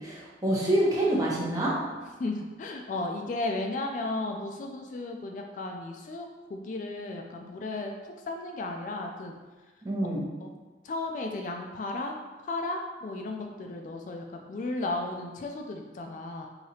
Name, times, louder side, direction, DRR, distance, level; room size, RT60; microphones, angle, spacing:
voice 1, 0.0-1.7 9.8-10.2, right 1 dB, 20° right, -5 dB, 0.8 m, -26 dB
voice 2, 2.2-7.9 8.3-9.4 10.4-10.5 10.8-16.5, left 2 dB, 45° left, 3 dB, 0.3 m, -34 dB
4.8 x 2.8 x 2.8 m, 1.3 s
head